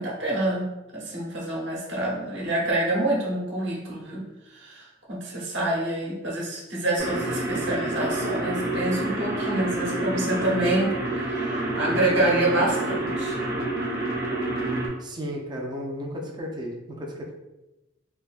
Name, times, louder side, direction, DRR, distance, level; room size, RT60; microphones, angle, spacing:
voice 1, 0.0-13.4, right 1 dB, 70° right, -4 dB, 1.1 m, -27 dB
sound 1, 7.0-14.9, right 2 dB, 55° right, 0.8 m, -28 dB
voice 2, 15.0-17.3, equal, 20° right, 0 dB, 0.5 m, -34 dB
3.4 x 2.7 x 2.4 m, 1.0 s
head